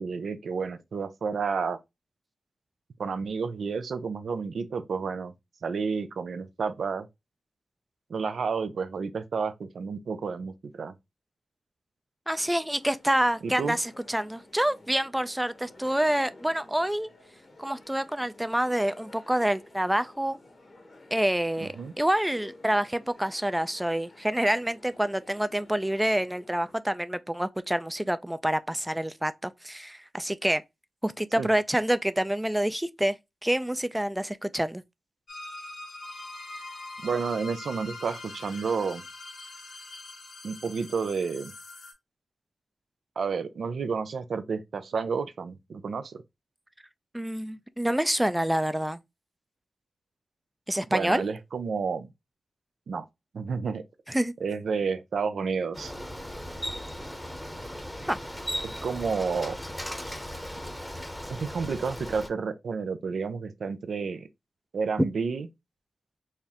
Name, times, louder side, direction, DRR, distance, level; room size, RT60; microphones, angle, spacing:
voice 1, 0.0-1.8 3.0-5.3 5.6-7.1 8.1-10.9 13.4-13.8 21.6-21.9 31.4-31.5 37.0-39.0 40.4-41.5 43.2-46.2 50.9-52.1 52.9-53.0 53.3-53.8 54.4-55.9 58.6-59.6 61.3-64.3 64.7-65.5, right 5 dB, 75° right, 0.5 m, -30 dB
sound 1, 12.3-26.8, left 2 dB, 55° left, 1.3 m, -53 dB
voice 2, 12.3-17.1 17.6-20.4 21.1-30.6 31.0-33.2 33.4-34.8 47.1-49.0 50.7-51.2 54.1-54.3 58.0-58.2, right 1 dB, 10° right, 0.4 m, -27 dB
sound 2, 35.3-41.9, left 2 dB, 70° left, 1.5 m, -43 dB
Bicycle, 55.7-62.3, equal, 10° left, 0.9 m, -37 dB
4.2 x 2.0 x 3.5 m
cardioid pair, 45°, 0 cm